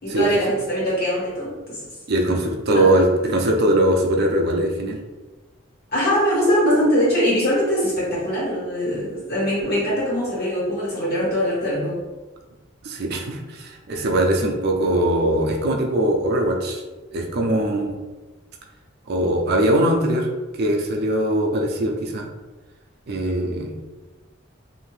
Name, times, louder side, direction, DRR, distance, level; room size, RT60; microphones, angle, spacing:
voice 1, 0.0-1.8 2.7-3.0 5.9-12.0, equal, 55° left, -7 dB, 1.4 m, -22 dB
voice 2, 2.1-5.0 12.8-16.8 17.1-18.0 19.1-20.3 20.6-22.3 23.1-23.7, right 1 dB, 55° right, 2 dB, 0.5 m, -21 dB
2.7 x 2.5 x 3.2 m, 1.2 s
head